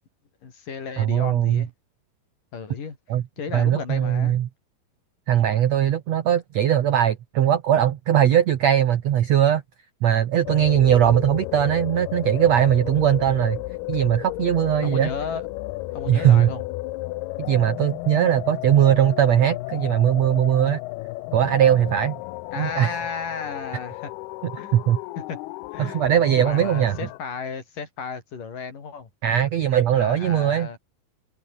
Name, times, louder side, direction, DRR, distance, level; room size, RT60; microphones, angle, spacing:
voice 1, 0.4-1.7 2.5-3.0 3.4-4.4 14.8-15.5 15.9-16.6 22.5-24.1 24.6-24.8 25.2-25.4 25.7-26.0 26.4-29.1 29.9-30.8, left 5 dB, 55° left, 5.6 m, -33 dB
voice 2, 1.0-1.7 3.1-3.2 3.5-4.5 5.3-9.6 10.0-13.6 13.9-15.1 16.1-16.5 17.4-20.8 21.3-22.2 22.6-22.9 24.4-25.0 25.8-27.0 29.2-30.7, right 10 dB, 65° right, 1.7 m, -20 dB
sound 1, 10.5-27.2, left 20 dB, 85° left, 2.6 m, -33 dB
omnidirectional pair, 4.6 m